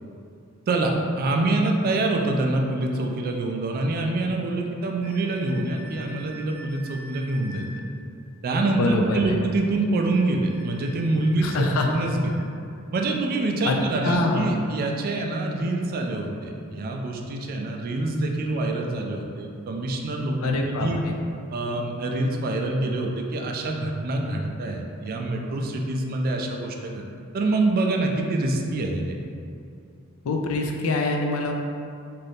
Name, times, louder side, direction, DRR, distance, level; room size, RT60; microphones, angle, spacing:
voice 1, 0.7-7.7 8.4-11.6 11.9-12.4 12.9-21.0 21.5-27.0 27.3-29.2, right 2 dB, 45° right, 2 dB, 0.3 m, -26 dB
sound 1, 5.0-7.8 9.9-12.5, right 1 dB, 50° left, 1.3 m, -46 dB
voice 2, 8.8-9.3 11.4-11.9 13.7-13.8 14.0-14.5 20.4-21.1 30.2-31.5, left 2 dB, 80° left, 2 dB, 0.4 m, -24 dB
2.7 x 2.5 x 3.4 m, 2.5 s
head